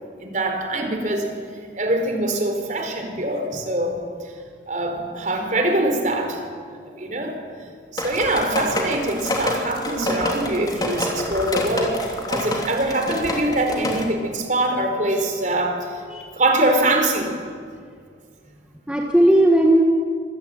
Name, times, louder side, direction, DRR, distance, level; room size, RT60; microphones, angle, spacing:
voice 1, 0.2-1.3 1.7-4.0 4.7-6.4 6.7-7.4 7.9-16.0 16.3-17.3, right 1 dB, 40° right, 4 dB, 4.2 m, -23 dB
voice 2, 0.7-1.1 3.5-3.6 13.9-14.0 16.1-16.3 18.9-19.8, right 1 dB, 5° right, -1 dB, 1.8 m, -18 dB
sound 1, 8.0-14.0, left 1 dB, 20° left, 3.2 m, -27 dB
26.0 x 18.5 x 9.0 m, 2.2 s
head